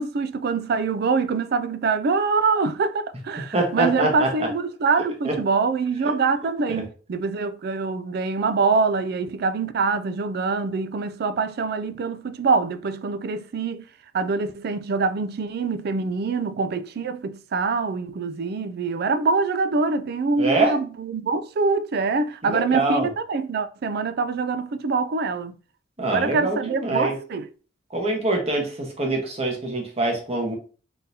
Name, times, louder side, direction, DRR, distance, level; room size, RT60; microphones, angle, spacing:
voice 1, 0.0-13.8 14.1-25.6 26.1-27.5, right 4 dB, 55° right, 0.4 m, -24 dB
voice 2, 3.5-4.3 5.2-5.3 6.7-6.8 20.4-20.7 22.4-23.1 26.0-27.1 27.9-30.5, right 2 dB, 35° right, 1.1 m, -24 dB
3.9 x 3.8 x 2.7 m
head